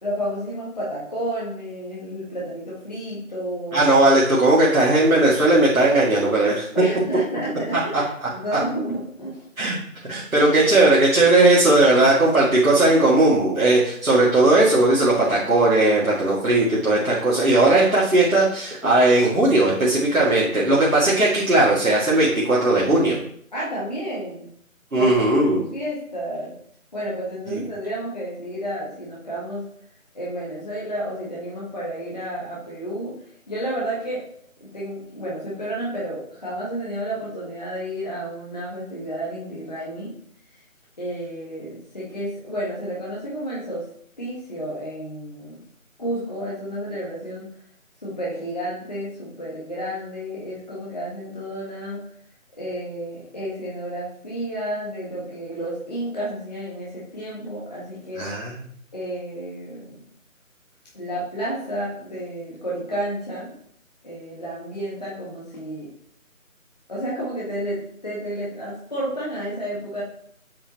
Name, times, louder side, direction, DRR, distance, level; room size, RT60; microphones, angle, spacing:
voice 1, 0.0-3.9 6.7-9.4 23.5-24.5 24.9-25.1 25.5-26.5 26.9-29.7 30.1-33.2 33.5-34.2 34.6-40.2 41.0-43.9 44.2-45.6 46.0-47.5 48.0-52.0 52.6-58.3 58.9-60.0 60.9-63.6 64.0-65.9 66.9-70.0, right 1 dB, 30° left, -6 dB, 1.7 m, -31 dB
voice 2, 3.7-6.7 7.9-8.0 9.6-9.8 10.1-23.2 24.9-25.6 58.2-58.5, right 2 dB, 75° right, -6 dB, 2.6 m, -17 dB
8.4 x 6.4 x 3.1 m, 0.64 s
figure-of-eight pair, 170°, 41 cm